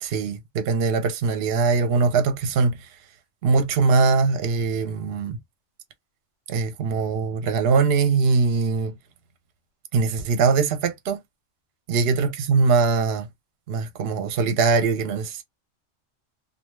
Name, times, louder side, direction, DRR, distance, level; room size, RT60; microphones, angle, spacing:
voice 1, 0.0-2.9 3.4-5.4 6.5-8.9 9.9-11.2 11.9-13.3 13.7-15.4, right 4 dB, 60° right, 0.8 m, -22 dB
2.4 x 2.2 x 3.1 m
omnidirectional pair, 1.3 m